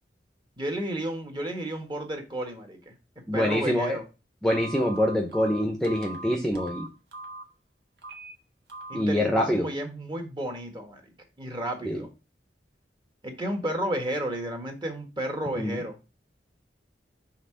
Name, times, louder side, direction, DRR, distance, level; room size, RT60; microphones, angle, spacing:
voice 1, 0.6-2.9 3.3-4.0 8.9-11.0 11.4-12.1 13.2-16.0, right 1 dB, 25° right, 3 dB, 1.6 m, -32 dB
voice 2, 3.3-4.0 4.4-6.9 8.9-9.7 11.8-12.0 15.5-15.8, equal, 5° left, 2 dB, 0.8 m, -25 dB
Telephone, 4.5-7.4 8.0-8.3 8.7-9.0, right 2 dB, 65° right, 1.4 m, -40 dB
5.8 x 3.6 x 5.7 m, 0.29 s
head